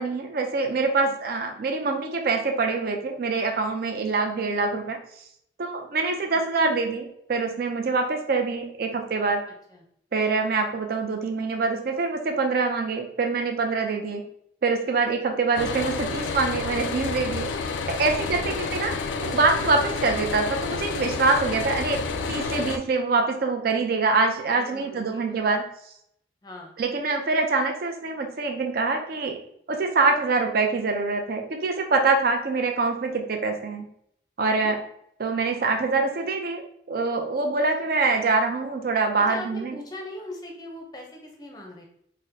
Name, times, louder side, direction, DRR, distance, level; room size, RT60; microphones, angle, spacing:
voice 1, 0.0-5.0 5.6-9.4 10.1-14.2 14.6-17.5 17.9-18.9 19.2-22.0 22.3-25.6 26.8-29.4 29.7-33.9 34.4-34.8 35.2-39.8, right 3 dB, 50° right, 4 dB, 0.4 m, -25 dB
sound 1, 15.5-22.8, left 4 dB, 75° left, 0.3 m, -30 dB
voice 2, 24.5-25.5 26.4-26.8 34.4-34.7 39.3-41.9, left 1 dB, 20° left, 1 dB, 0.6 m, -41 dB
4.0 x 2.1 x 2.6 m, 0.69 s
head